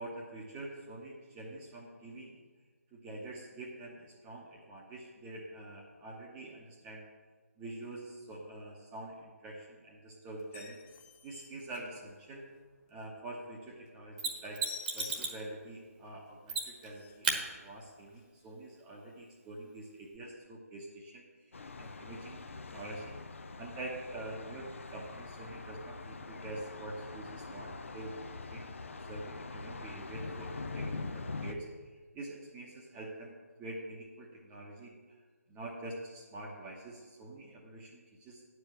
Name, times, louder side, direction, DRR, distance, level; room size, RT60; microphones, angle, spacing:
voice 1, 0.0-2.4 2.9-7.1 7.6-10.8 11.2-12.5 12.9-14.6 14.9-22.4 22.7-23.2 23.6-28.2 28.5-35.0 35.5-38.4, right 1 dB, 10° right, -3 dB, 0.9 m, -46 dB
sound 1, 10.4-12.5 12.9-13.1 13.5-13.6 13.9-14.0 14.2-15.6 16.1-16.2 16.5-16.6 16.8-17.3 18.1-18.2, left 9 dB, 10° left, 0.4 m, -50 dB
Mechanisms, 14.2-15.4 16.5-16.9 17.2-17.4 20.1-20.2, right 4 dB, 35° right, 1.2 m, -34 dB
Thunder, 21.5-31.5, left 3 dB, 55° left, 0.7 m, -43 dB
9.4 x 4.9 x 7.8 m, 1.5 s
figure-of-eight pair, 150°, 8 cm